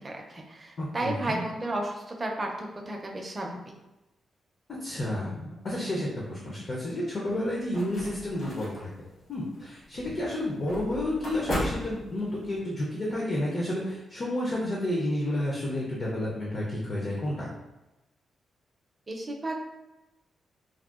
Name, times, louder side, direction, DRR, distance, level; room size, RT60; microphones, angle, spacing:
voice 1, 0.0-3.6 19.1-19.6, right 1 dB, 25° right, 0 dB, 0.4 m, -33 dB
voice 2, 0.8-1.4 4.7-8.9 9.3-17.5, left 1 dB, 40° left, -4 dB, 0.5 m, -31 dB
sound 1, 7.3-12.6, equal, 60° left, 1.2 m, -37 dB
3.5 x 2.1 x 2.3 m, 1.0 s
wide cardioid pair, 150°, 0 cm